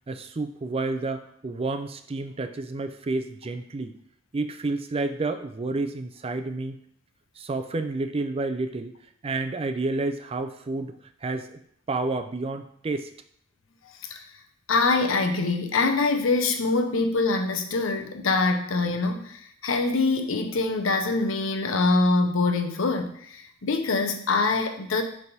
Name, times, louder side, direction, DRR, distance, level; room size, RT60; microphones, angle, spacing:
voice 1, 0.1-3.9 4.3-6.8 7.4-8.9 9.2-11.0 11.2-11.6 11.9-13.1, right 3 dB, 30° right, 8 dB, 0.4 m, -30 dB
voice 2, 14.7-25.0, left 3 dB, 85° left, 5 dB, 0.7 m, -24 dB
6.7 x 3.5 x 4.1 m, 0.64 s
head